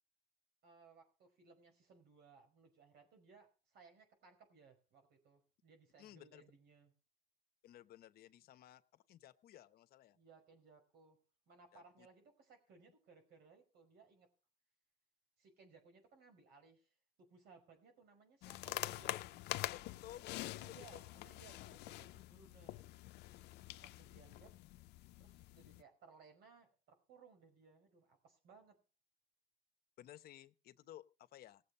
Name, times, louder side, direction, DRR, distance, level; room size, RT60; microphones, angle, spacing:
voice 1, 0.6-6.9 10.1-11.2 11.5-14.3 15.4-19.2 20.6-22.9 23.8-24.8 25.2-28.8, right 5 dB, 75° right, 4 dB, 5.5 m, -64 dB
voice 2, 6.0-6.4 7.6-10.2 11.7-12.1 19.7-21.0 21.5-21.7 30.0-31.6, left 12 dB, 65° left, 11 dB, 1.0 m, -57 dB
sound 1, 18.4-25.8, left 17 dB, 80° left, 0.6 m, -46 dB
18.0 x 7.7 x 5.4 m, 0.34 s
cardioid pair, 110°, 17 cm